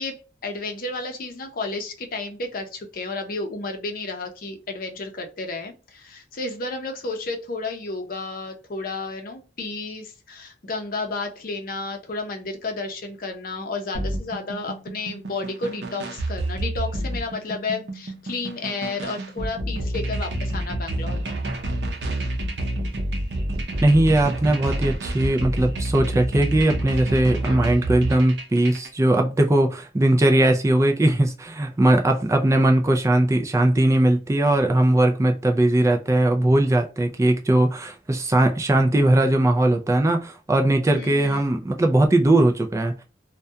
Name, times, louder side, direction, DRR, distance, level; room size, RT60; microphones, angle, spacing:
voice 1, 0.0-21.2 27.4-27.8 40.9-41.4, left 3 dB, 55° left, 0.6 m, -32 dB
sound 1, 13.9-28.9, right 1 dB, 70° right, 0.6 m, -28 dB
voice 2, 23.8-43.0, right 1 dB, 15° right, 0.3 m, -19 dB
2.7 x 2.2 x 2.2 m
head